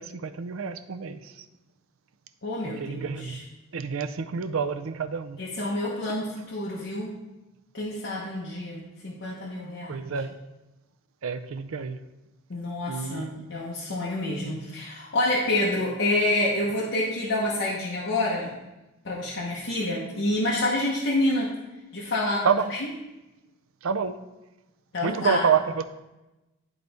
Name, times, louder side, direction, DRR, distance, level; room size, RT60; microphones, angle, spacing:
voice 1, 0.0-1.4 2.6-3.4 3.7-5.4 9.9-10.3 11.2-12.0 12.9-13.5 22.4-22.7 23.8-24.1 25.0-25.8, right 6 dB, 80° right, 9 dB, 0.5 m, -28 dB
voice 2, 2.4-3.4 5.4-7.1 7.7-10.0 12.5-18.5 19.0-21.5 21.9-22.8 24.9-25.4, left 1 dB, 60° left, -5 dB, 1.0 m, -28 dB
11.0 x 4.0 x 3.4 m, 1.0 s
head